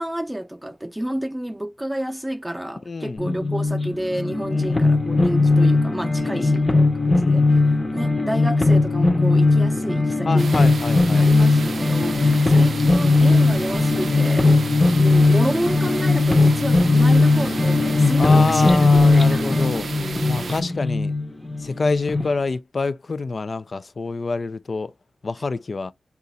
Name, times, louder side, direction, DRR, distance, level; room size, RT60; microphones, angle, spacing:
voice 1, 0.0-10.7 11.1-14.5 15.0-19.4 19.9-20.5, right 1 dB, 10° right, 0.6 m, -30 dB
voice 2, 2.9-3.2 4.5-4.8 6.2-6.6 7.1-7.6 10.2-11.3 12.2-12.4 14.5-14.6 18.2-21.1 21.6-24.9 25.2-25.9, left 3 dB, 55° left, 0.4 m, -27 dB
sound 1, 3.2-22.3, left 3 dB, 25° left, 0.8 m, -18 dB
sound 2, 10.4-20.6, right 5 dB, 80° right, 0.3 m, -33 dB
3.9 x 2.4 x 4.0 m
cardioid pair, 60°, 0 cm